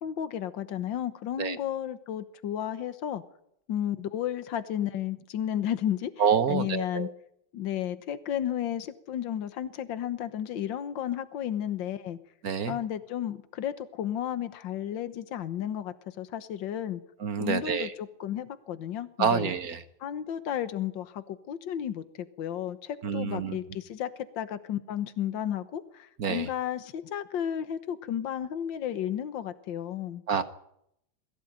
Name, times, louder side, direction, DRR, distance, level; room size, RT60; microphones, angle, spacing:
voice 1, 0.0-3.2 3.7-6.1 6.5-7.1 7.5-12.2 12.7-17.0 17.4-19.5 20.0-30.2, left 10 dB, 75° left, 12 dB, 1.8 m, -33 dB
voice 2, 6.2-7.1 12.4-12.8 17.2-17.9 19.2-19.8 23.0-23.6 26.2-26.5 30.3-30.4, right 7 dB, 55° right, 10 dB, 1.4 m, -27 dB
21.5 x 15.5 x 8.9 m, 0.75 s
omnidirectional pair, 2.1 m